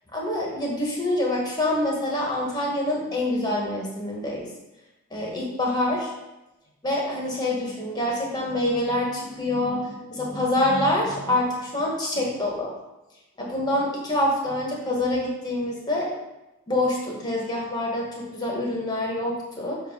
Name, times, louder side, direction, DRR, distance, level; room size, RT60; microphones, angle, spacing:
voice 1, 0.1-4.5 5.1-6.1 6.8-12.7 13.4-16.1 16.7-19.8, left 1 dB, 20° left, -2 dB, 1.5 m, -26 dB
7.7 x 3.0 x 5.5 m, 0.97 s
head